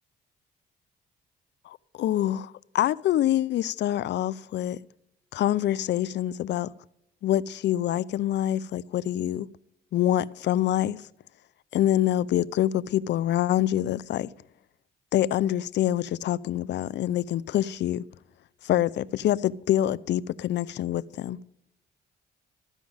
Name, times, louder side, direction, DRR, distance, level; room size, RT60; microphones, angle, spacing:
voice 1, 1.7-4.8 5.3-6.7 7.2-9.5 9.9-11.0 11.7-14.3 15.1-18.0 18.6-21.4, left 12 dB, 65° left, 0.5 m, -26 dB
13.0 x 5.1 x 8.7 m
supercardioid pair, 65°, 20 cm